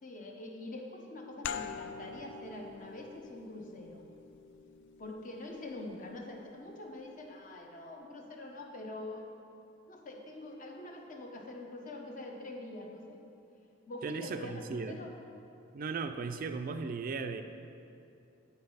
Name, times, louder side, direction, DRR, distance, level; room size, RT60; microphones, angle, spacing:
voice 1, 0.0-4.1 5.0-9.4 9.9-13.2 13.9-15.1, left 2 dB, 40° left, 1 dB, 0.8 m, -45 dB
sound 1, 1.4-6.7, left 7 dB, 60° left, 0.3 m, -45 dB
voice 2, 14.0-15.0 15.7-17.4, right 4 dB, 45° right, 8 dB, 0.3 m, -37 dB
8.9 x 4.1 x 5.4 m, 2.6 s
head